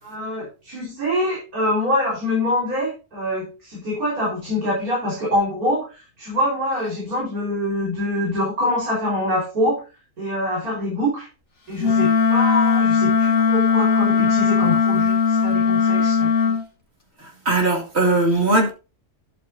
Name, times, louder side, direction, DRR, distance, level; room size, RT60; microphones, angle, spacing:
voice 1, 0.0-9.8 10.2-11.3 11.7-16.6, left 1 dB, 75° right, 5.3 m, -25 dB
Wind instrument woodwind instrument, 11.8-16.6, left 6 dB, 50° left, 2.4 m, -18 dB
voice 2, 17.5-18.7, right 2 dB, 45° right, 2.6 m, -18 dB
11.5 x 8.9 x 2.8 m
omnidirectional pair, 1.6 m